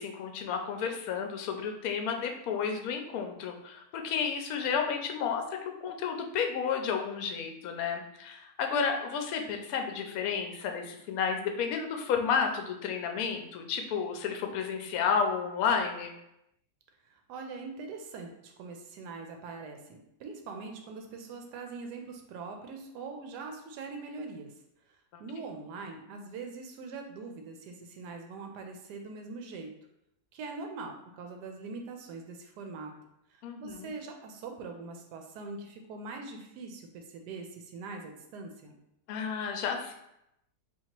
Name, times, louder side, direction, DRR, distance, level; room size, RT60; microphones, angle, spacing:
voice 1, 0.0-5.4 5.8-16.1 25.1-25.2 33.4-33.9 39.1-39.9, left 6 dB, 70° left, 4 dB, 1.0 m, -31 dB
voice 2, 17.1-24.5 24.9-29.7 30.3-32.9 33.3-38.8, right 4 dB, 85° right, 3 dB, 1.2 m, -42 dB
2.9 x 2.8 x 4.3 m, 0.82 s
omnidirectional pair, 1.7 m